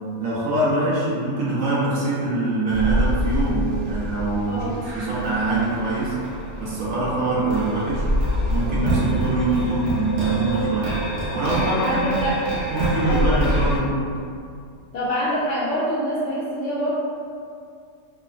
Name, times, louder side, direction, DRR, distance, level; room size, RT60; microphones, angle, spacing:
voice 1, 0.2-4.7 4.9-6.2 6.6-8.1 8.5-11.0 11.3-12.1 12.7-14.1, right 2 dB, 70° right, -7 dB, 1.0 m, -23 dB
sound 1, 2.7-13.8, equal, 85° right, 1.2 m, -26 dB
voice 2, 11.8-12.4 13.0-13.3 14.9-17.0, equal, 65° left, -8 dB, 0.7 m, -25 dB
3.0 x 2.0 x 2.4 m, 2.3 s
omnidirectional pair, 1.5 m